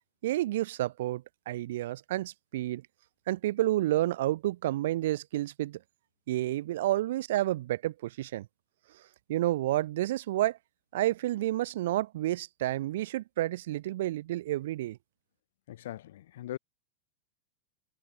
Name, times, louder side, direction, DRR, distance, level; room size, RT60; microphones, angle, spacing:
voice 1, 0.2-2.8 3.3-5.8 6.3-8.5 9.3-10.6 10.9-15.0, right 15 dB, 55° right, 3.4 m, -30 dB
voice 2, 15.7-16.6, left 13 dB, 55° left, 4.8 m, -40 dB
figure-of-eight pair, 90°, 0 cm